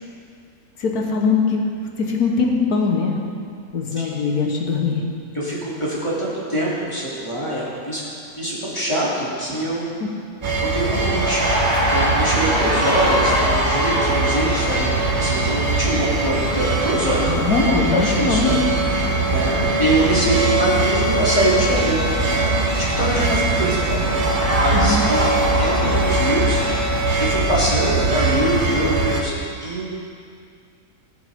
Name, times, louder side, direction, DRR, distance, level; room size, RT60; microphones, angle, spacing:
voice 1, 0.8-1.6 2.0-3.2 3.7-5.0 17.3-18.6 24.7-25.0, left 4 dB, 90° left, 0 dB, 1.7 m, -21 dB
voice 2, 5.3-8.0 8.4-10.0 10.7-17.5 17.9-18.5 19.3-24.0 24.6-26.8 27.2-29.3 29.6-29.9, right 1 dB, 20° left, -8 dB, 2.8 m, -24 dB
sound 1, 10.4-29.2, right 2 dB, 35° right, 1.1 m, -21 dB
sound 2, 10.8-27.4, equal, 70° right, 3.0 m, -27 dB
19.5 x 7.0 x 3.5 m, 2.3 s
omnidirectional pair, 1.6 m